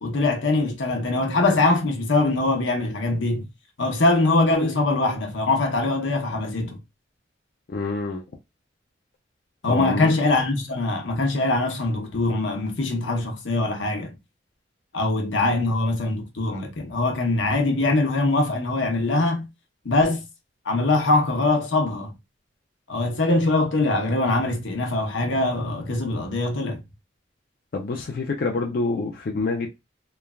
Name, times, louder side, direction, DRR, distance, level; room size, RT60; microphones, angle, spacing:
voice 1, 0.0-3.5 3.8-6.8 9.6-14.1 14.9-19.5 19.8-20.2 20.6-22.1 22.9-26.8, left 2 dB, 90° left, 0.8 m, -22 dB
voice 2, 7.7-8.2 9.7-10.1 27.7-29.7, left 3 dB, 50° left, 0.4 m, -26 dB
3.1 x 2.2 x 2.2 m
head